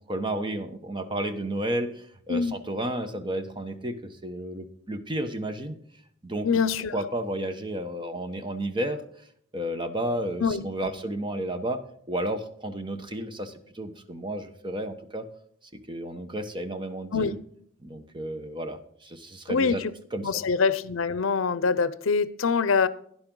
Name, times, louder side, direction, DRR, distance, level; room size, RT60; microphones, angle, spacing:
voice 1, 0.1-5.8 6.2-6.5 6.9-9.0 9.5-11.8 12.1-15.2 15.7-17.4 17.8-19.8 20.1-20.4, right 1 dB, 25° right, 1.1 m, -32 dB
voice 2, 6.4-7.0 10.4-10.9 17.1-17.3 19.5-19.9 20.2-22.9, left 5 dB, 80° left, 0.6 m, -24 dB
12.0 x 10.5 x 3.8 m
head